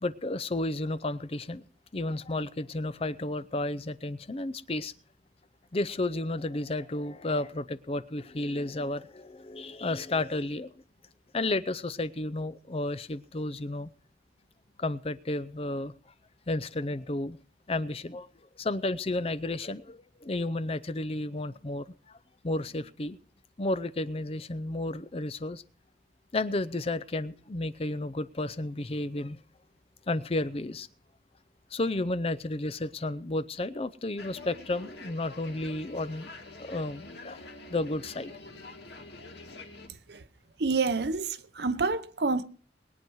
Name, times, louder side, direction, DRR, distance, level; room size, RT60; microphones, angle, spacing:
voice 1, 0.0-1.7 1.9-4.9 5.7-10.7 11.3-13.9 14.8-15.9 16.5-17.4 17.7-18.3 18.6-22.2 22.4-23.2 23.6-25.6 26.3-29.4 30.1-30.9 31.7-36.3 36.6-37.4 37.7-38.3, left 2 dB, 35° left, 0.6 m, -32 dB
sound 1, 34.2-39.9, left 2 dB, 65° left, 2.6 m, -46 dB
voice 2, 40.6-42.4, right 4 dB, 65° right, 0.8 m, -28 dB
21.5 x 9.3 x 4.7 m
head